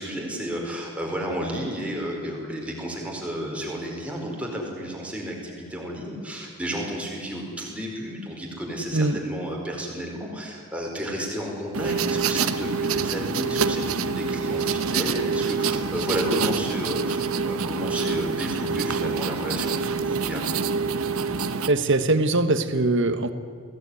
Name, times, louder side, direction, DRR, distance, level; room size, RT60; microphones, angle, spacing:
voice 1, 0.0-20.7, equal, 5° right, -1 dB, 4.6 m, -32 dB
sound 1, 11.7-21.7, right 5 dB, 80° right, 1.1 m, -26 dB
voice 2, 21.7-23.3, right 2 dB, 55° right, 10 dB, 1.4 m, -21 dB
22.0 x 16.5 x 9.8 m, 2.3 s
head